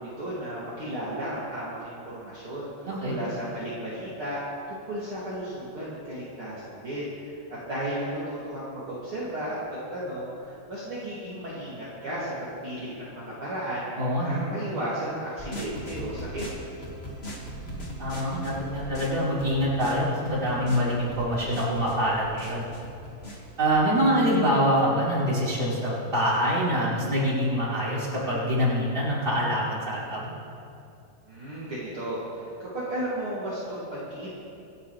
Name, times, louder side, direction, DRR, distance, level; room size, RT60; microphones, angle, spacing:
voice 1, 0.0-4.4 4.7-7.4 7.7-13.9 14.2-16.4 31.3-34.3, right 1 dB, 40° right, -10 dB, 3.3 m, -34 dB
voice 2, 2.8-3.2 14.0-14.4 17.5-22.6 23.6-30.3, equal, 15° right, -9 dB, 4.5 m, -25 dB
sound 1, 15.4-23.9, right 1 dB, 25° left, 1.6 m, -40 dB
26.5 x 11.5 x 3.4 m, 2.6 s
omnidirectional pair, 3.9 m